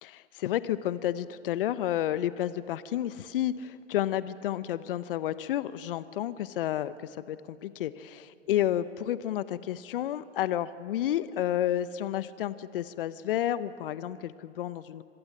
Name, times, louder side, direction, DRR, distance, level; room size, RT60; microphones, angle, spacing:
voice 1, 0.0-6.9 7.3-7.4 7.6-15.0, left 12 dB, 45° left, 15 dB, 0.9 m, -31 dB
25.5 x 17.0 x 9.9 m, 2.5 s
hypercardioid pair, 135°, 37 cm